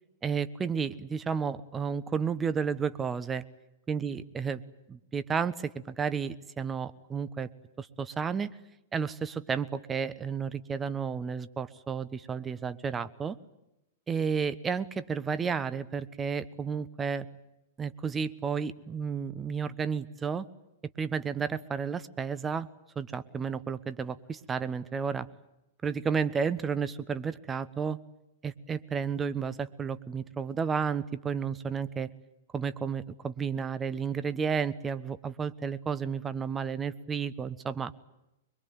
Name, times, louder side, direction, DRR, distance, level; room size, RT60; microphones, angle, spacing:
voice 1, 0.2-3.4 3.9-4.6 4.9-7.5 7.8-8.5 8.9-13.4 14.1-17.3 17.8-20.5 21.0-22.7 23.0-25.3 25.8-28.0 28.4-32.1 32.5-37.9, right 6 dB, 20° right, 14 dB, 1.2 m, -32 dB
24.0 x 22.5 x 9.4 m, 0.89 s
figure-of-eight pair, 105°, 0 cm